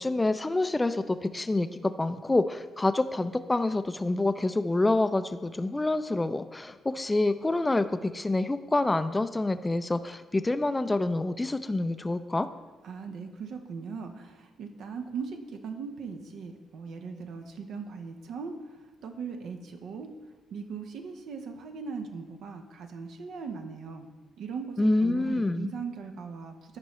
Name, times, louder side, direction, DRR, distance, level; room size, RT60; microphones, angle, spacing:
voice 1, 0.0-12.5 24.8-25.7, left 2 dB, 20° left, 11 dB, 0.4 m, -27 dB
voice 2, 12.8-20.1 20.5-24.1 24.4-26.8, right 5 dB, 60° right, 5 dB, 0.8 m, -39 dB
13.0 x 5.2 x 3.1 m, 1.3 s
figure-of-eight pair, 40°, 0 cm